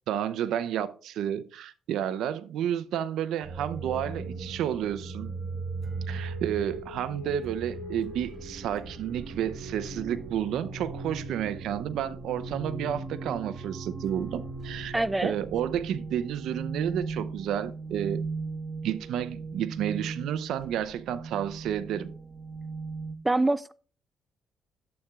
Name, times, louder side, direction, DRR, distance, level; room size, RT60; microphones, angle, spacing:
voice 1, 0.1-5.3 6.1-15.0 15.2-18.2 18.8-22.1, right 10 dB, 80° right, 0.6 m, -31 dB
sound 1, 3.4-23.1, right 3 dB, 35° right, 1.4 m, -38 dB
voice 2, 14.9-15.4 23.2-23.7, right 2 dB, 15° right, 0.3 m, -25 dB
11.5 x 8.1 x 2.4 m
cardioid pair, 90°, 0 cm